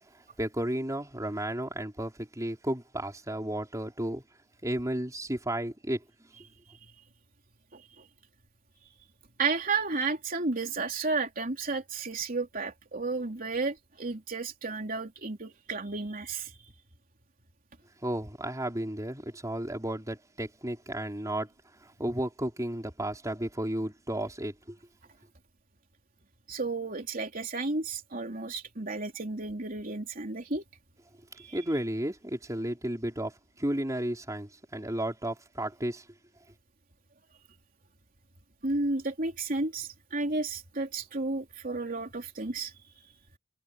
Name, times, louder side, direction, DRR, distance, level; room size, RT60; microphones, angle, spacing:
voice 1, 0.1-4.2 4.6-6.0 18.0-24.8 31.5-36.0, right 1 dB, 15° right, 4.6 m, -33 dB
voice 2, 7.7-8.0 9.4-16.6 26.5-30.6 31.4-31.6 38.6-42.7, right 3 dB, 45° right, 3.4 m, -32 dB
head